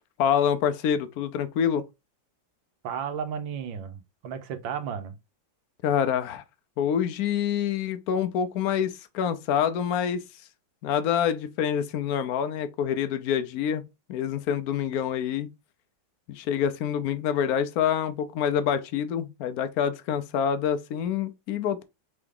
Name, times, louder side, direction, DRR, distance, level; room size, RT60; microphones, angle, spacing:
voice 1, 0.2-1.8 5.8-6.4 6.8-10.2 10.8-13.8 14.1-15.5 16.3-21.8, left 8 dB, 70° left, 0.9 m, -26 dB
voice 2, 2.8-5.2, right 7 dB, 90° right, 1.5 m, -33 dB
3.8 x 3.5 x 3.7 m
omnidirectional pair, 2.0 m